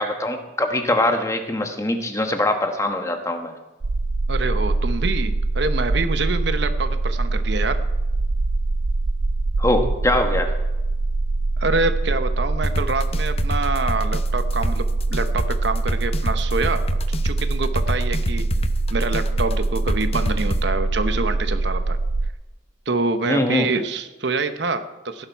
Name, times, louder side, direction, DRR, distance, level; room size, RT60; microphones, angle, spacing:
voice 1, 0.0-3.5 9.6-10.5 23.3-23.7, left 1 dB, 15° left, 5 dB, 1.2 m, -22 dB
sound 1, 3.8-22.3, right 2 dB, 90° right, 0.6 m, -23 dB
voice 2, 4.3-7.8 11.6-14.8 15.1-16.9 17.2-18.4 18.9-22.0 22.9-25.3, right 3 dB, 60° right, 9 dB, 0.9 m, -26 dB
sound 2, 12.6-20.6, left 1 dB, 30° left, 0.7 m, -27 dB
16.0 x 11.5 x 4.6 m, 1.1 s
head